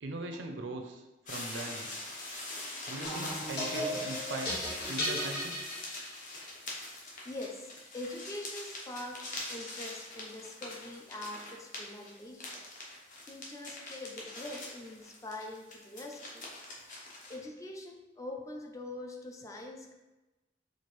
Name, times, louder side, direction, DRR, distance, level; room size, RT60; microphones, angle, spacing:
voice 1, 0.0-1.9 2.9-5.7, right 2 dB, 90° right, 4 dB, 0.5 m, -40 dB
sound 1, 1.3-17.4, left 2 dB, 45° left, 0.8 m, -43 dB
sound 2, 3.0-6.4, equal, 60° left, 1.2 m, -35 dB
voice 2, 7.2-12.5 12.9-16.5 17.3-19.9, left 2 dB, 15° left, 2 dB, 0.3 m, -44 dB
4.5 x 2.4 x 3.1 m, 1.1 s
head